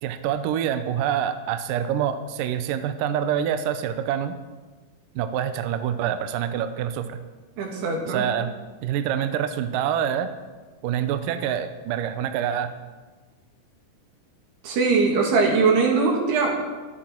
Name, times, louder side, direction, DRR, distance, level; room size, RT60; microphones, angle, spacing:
voice 1, 0.0-4.4 5.2-7.2 8.1-8.5 8.8-10.3 10.8-12.7, right 9 dB, 85° right, 10 dB, 1.9 m, -26 dB
voice 2, 7.6-8.3 14.6-16.5, right 4 dB, 70° right, 0 dB, 4.3 m, -21 dB
23.0 x 8.9 x 4.5 m, 1.3 s
omnidirectional pair, 4.9 m